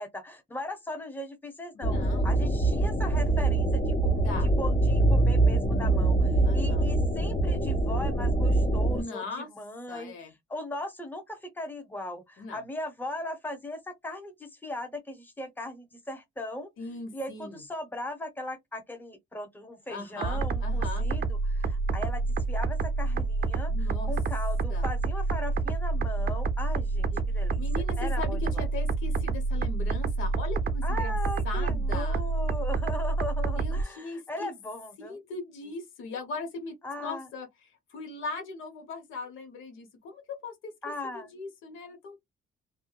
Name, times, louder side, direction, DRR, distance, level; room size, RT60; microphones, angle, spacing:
voice 1, 0.0-16.7 17.1-27.6 28.0-28.7 30.8-35.2 36.8-37.3 40.8-41.3, left 1 dB, 10° left, 0.8 m, -38 dB
voice 2, 1.7-2.4 4.2-4.5 6.4-6.9 8.9-9.5 9.9-10.3 12.4-12.6 16.8-17.6 19.9-21.1 23.7-24.1 24.7-24.9 27.1-27.2 27.6-31.2 31.4-32.2 33.6-34.5 35.0-37.5 37.9-40.7 41.1-42.2, left 3 dB, 85° left, 0.9 m, -39 dB
sound 1, 1.8-9.0, right 2 dB, 50° left, 1.5 m, -24 dB
sound 2, 20.2-33.8, right 3 dB, 50° right, 0.4 m, -28 dB
2.6 x 2.2 x 2.2 m
cardioid pair, 90°, 20 cm